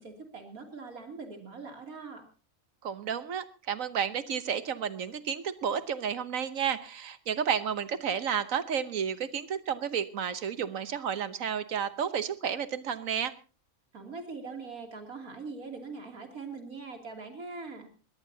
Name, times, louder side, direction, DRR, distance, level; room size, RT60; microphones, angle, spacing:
voice 1, 0.0-2.2 13.9-17.9, right 4 dB, 90° right, 4 dB, 3.4 m, -42 dB
voice 2, 2.8-13.3, right 8 dB, 70° right, 13 dB, 1.4 m, -31 dB
22.0 x 17.5 x 2.8 m, 0.34 s
omnidirectional pair, 1.5 m